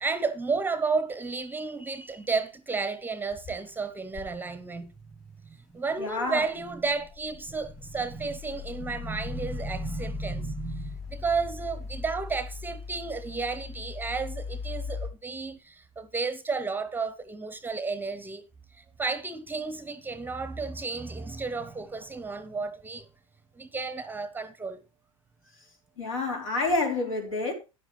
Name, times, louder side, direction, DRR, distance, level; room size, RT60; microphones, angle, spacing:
voice 1, 0.0-4.9 5.4-18.4 18.7-23.1 23.6-24.8, right 4 dB, 10° right, 0.8 m, -32 dB
sound 1, 1.1-1.4 1.7-2.3 2.7-2.8 3.3-4.3 6.4-15.1, left 5 dB, 50° left, 5.2 m, -39 dB
voice 2, 6.0-6.4 26.0-27.5, left 2 dB, 75° left, 4.2 m, -28 dB
13.0 x 9.9 x 3.2 m
figure-of-eight pair, 85°, 18 cm